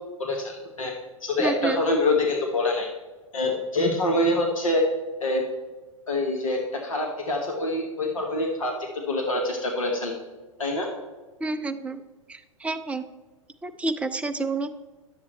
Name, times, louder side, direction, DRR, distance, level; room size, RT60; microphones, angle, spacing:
voice 1, 0.2-0.9 1.2-2.9 3.3-4.8 5.2-5.4 6.1-10.1 10.6-10.9, left 2 dB, 70° left, 1 dB, 1.3 m, -25 dB
voice 2, 1.4-1.8 11.4-12.0 12.3-13.0 13.6-14.7, right 3 dB, 5° right, 9 dB, 0.4 m, -29 dB
10.5 x 7.2 x 3.2 m, 1.3 s
figure-of-eight pair, 100°, 18 cm